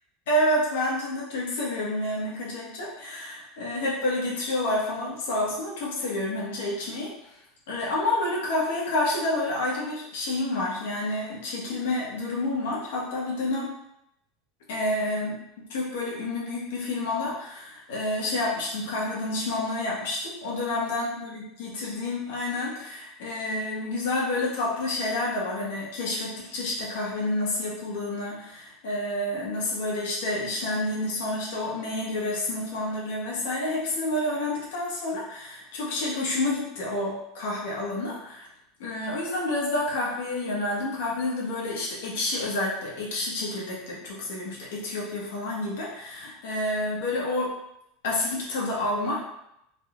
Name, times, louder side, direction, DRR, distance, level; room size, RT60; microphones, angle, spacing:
voice 1, 0.3-7.4 7.7-13.7 14.7-15.4 15.7-38.5 38.8-47.5 48.0-49.2, left 2 dB, 85° left, -4 dB, 1.4 m, -29 dB
3.8 x 3.0 x 2.5 m, 0.80 s
supercardioid pair, 170°, 0 cm